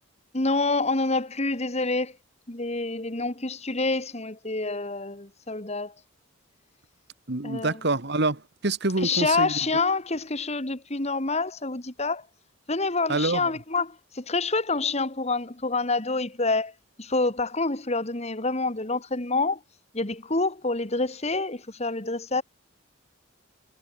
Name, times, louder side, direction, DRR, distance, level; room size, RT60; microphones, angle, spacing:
voice 1, 0.3-2.2 2.5-5.9 7.4-7.8 9.0-12.3 12.7-16.7 17.0-19.6 19.9-22.4, left 3 dB, 30° left, 2.0 m, -27 dB
voice 2, 7.3-9.5 13.1-13.5, right 2 dB, 55° right, 1.8 m, -26 dB
head